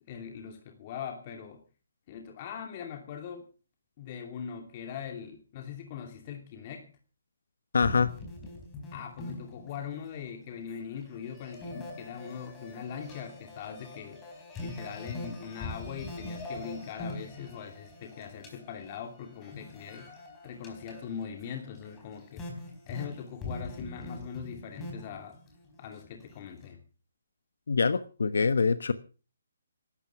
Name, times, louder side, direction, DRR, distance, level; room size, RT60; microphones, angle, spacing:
voice 1, 0.1-1.6 2.1-3.4 4.0-6.9 8.9-14.2 14.6-20.1 20.4-22.5 22.9-25.4 25.8-26.8, left 7 dB, 30° left, 4 dB, 2.7 m, -41 dB
voice 2, 7.7-8.1 27.7-28.9, left 5 dB, 75° left, 12 dB, 1.2 m, -25 dB
sound 1, 7.8-10.1 10.4-26.7, left 2 dB, 15° left, 4.4 m, -43 dB
15.0 x 12.5 x 5.9 m, 0.37 s
hypercardioid pair, 165°, 0 cm